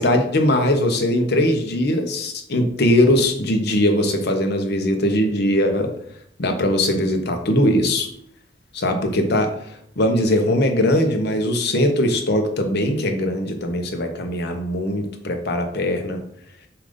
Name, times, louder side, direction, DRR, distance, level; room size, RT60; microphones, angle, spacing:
voice 1, 0.0-5.9 6.4-8.1 8.7-9.5 10.0-16.2, left 1 dB, 55° left, 5 dB, 0.9 m, -20 dB
7.1 x 2.6 x 5.2 m, 0.68 s
head